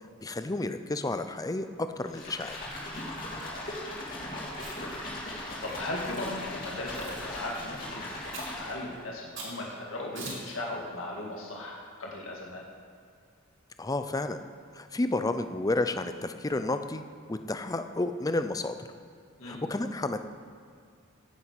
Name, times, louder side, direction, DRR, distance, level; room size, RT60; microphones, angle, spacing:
voice 1, 0.2-2.6 13.8-14.4 14.7-17.0 17.3-18.7 19.4-20.2, left 2 dB, 15° left, 9 dB, 0.5 m, -31 dB
sound 1, 2.1-9.0, left 1 dB, 40° left, 3.1 m, -38 dB
voice 2, 3.4-4.2 4.6-8.1 8.6-12.6 19.4-19.9, left 2 dB, 70° left, -2 dB, 1.9 m, -38 dB
Chewing mastication, 4.6-5.0 5.7-6.3 6.9-7.2 8.3-8.6 9.4-9.6 10.1-10.5, right 3 dB, 60° right, 3.5 m, -42 dB
9.7 x 7.6 x 8.2 m, 2.3 s
head